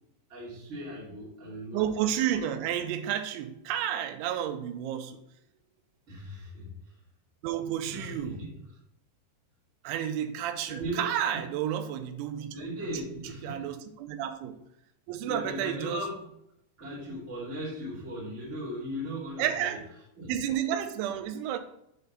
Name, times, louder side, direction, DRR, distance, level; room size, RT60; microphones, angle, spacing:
voice 1, 0.3-1.8 6.1-6.7 7.9-8.5 10.7-11.4 12.5-13.7 15.3-16.2 16.8-19.8 20.2-20.3, equal, 25° right, 1.7 m, -38 dB
voice 2, 1.7-5.2 7.4-8.4 9.8-12.5 13.4-14.6 15.1-16.0 19.4-19.8 20.3-21.6, right 10 dB, 90° right, 3.0 m, -31 dB
8.3 x 3.4 x 5.3 m
omnidirectional pair, 5.2 m